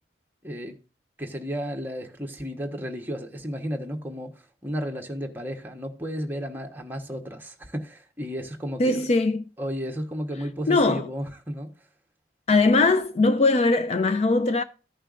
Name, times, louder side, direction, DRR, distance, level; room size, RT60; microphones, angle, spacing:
voice 1, 0.4-0.8 1.2-9.0 9.6-11.7, equal, 10° right, 1.1 m, -33 dB
voice 2, 8.8-9.4 10.7-11.1 12.5-14.6, left 3 dB, 35° left, 0.4 m, -20 dB
15.0 x 5.5 x 2.5 m
head